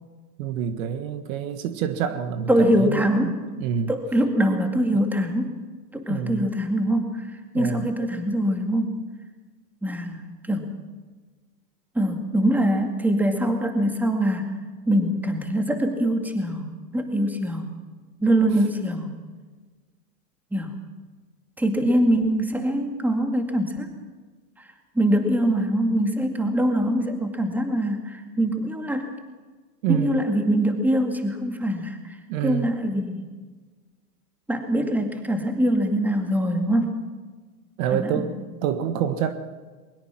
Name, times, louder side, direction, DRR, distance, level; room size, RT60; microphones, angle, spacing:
voice 1, 0.4-3.9 6.1-6.5 7.5-7.9 29.8-30.2 32.3-32.7 37.8-39.3, right 8 dB, 55° right, 10 dB, 1.8 m, -27 dB
voice 2, 2.5-3.3 3.9-5.5 5.9-7.3 7.5-9.0 9.8-10.7 12.0-14.5 14.9-17.7 18.2-19.1 20.5-20.7 21.6-23.9 25.0-29.1 29.9-32.2 32.4-33.2 34.5-37.0 37.9-38.3, right 1 dB, 5° right, 5 dB, 2.2 m, -23 dB
21.5 x 20.5 x 6.2 m, 1.4 s
hypercardioid pair, 130°, 49 cm